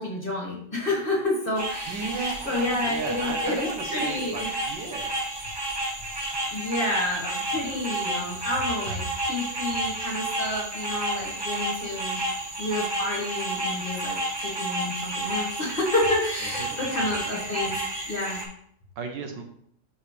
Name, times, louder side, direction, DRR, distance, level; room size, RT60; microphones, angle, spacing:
voice 1, 0.0-4.5 6.5-12.2 12.6-17.8 18.1-18.4, left 2 dB, 30° left, -3 dB, 1.7 m, -29 dB
sound 1, 1.5-18.4, right 1 dB, 25° right, 0.6 m, -31 dB
voice 2, 1.9-5.1 16.6-16.8 19.0-19.4, right 4 dB, 75° right, 5 dB, 1.5 m, -35 dB
6.1 x 5.7 x 3.2 m, 0.67 s
omnidirectional pair, 2.0 m